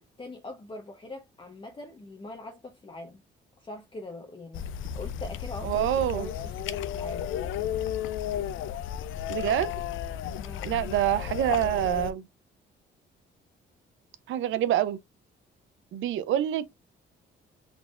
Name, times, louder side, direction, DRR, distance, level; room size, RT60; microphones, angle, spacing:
voice 1, 0.0-3.2 3.6-4.7 4.9-7.5 10.3-10.7 11.1-12.1, left 2 dB, 25° left, 1.0 m, -42 dB
sound 1, 4.5-12.1, left 10 dB, 85° left, 0.5 m, -33 dB
voice 2, 5.6-6.3 9.3-9.7 10.6-12.2 14.3-15.0 15.9-16.6, right 12 dB, 80° right, 0.7 m, -26 dB
4.6 x 4.0 x 2.4 m
cardioid pair, 90°, 20 cm